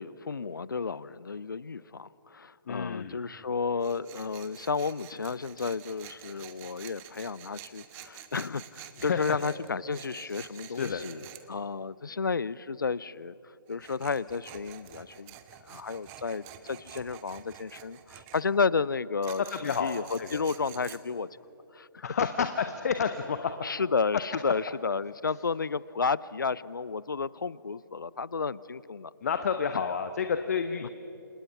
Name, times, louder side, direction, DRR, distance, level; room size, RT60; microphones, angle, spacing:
voice 1, 0.0-13.3 13.7-21.3 21.7-22.0 23.6-29.1 30.8-30.9, left 5 dB, 65° left, 20 dB, 0.7 m, -32 dB
voice 2, 2.7-3.2 9.0-9.2 10.2-10.3 10.7-11.0 19.5-20.4 22.0-23.5 29.2-30.9, left 6 dB, 45° left, 9 dB, 1.0 m, -30 dB
Tools, 3.8-11.4 13.7-18.4 19.2-21.0, right 12 dB, 20° right, 1.0 m, -49 dB
29.5 x 27.5 x 5.9 m, 2.8 s
figure-of-eight pair, 135°, 12 cm